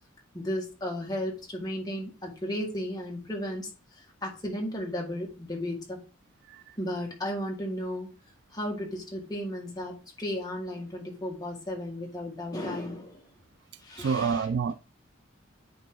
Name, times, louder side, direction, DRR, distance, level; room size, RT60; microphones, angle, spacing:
voice 1, 0.3-3.7 4.2-6.0 6.8-8.1 8.5-13.3 13.8-14.5, left 1 dB, 20° left, 1.8 m, -34 dB
voice 2, 14.0-14.7, right 6 dB, 55° right, 0.3 m, -28 dB
9.4 x 3.7 x 3.9 m
head